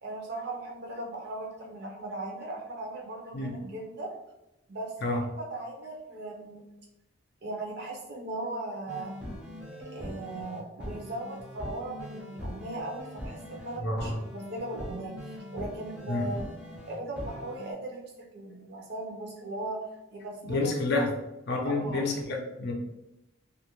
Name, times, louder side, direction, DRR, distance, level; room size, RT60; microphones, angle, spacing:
voice 1, 0.0-4.1 4.7-6.6 7.4-9.1 9.9-16.4 16.9-20.7 21.6-22.1, right 2 dB, 50° right, 0 dB, 0.6 m, -38 dB
sound 1, 8.9-17.7, equal, 5° right, 0.5 m, -41 dB
voice 2, 13.8-14.2 16.1-16.3 20.4-21.1 21.5-22.7, left 2 dB, 50° left, 0 dB, 0.5 m, -29 dB
2.5 x 2.1 x 2.9 m, 0.91 s
head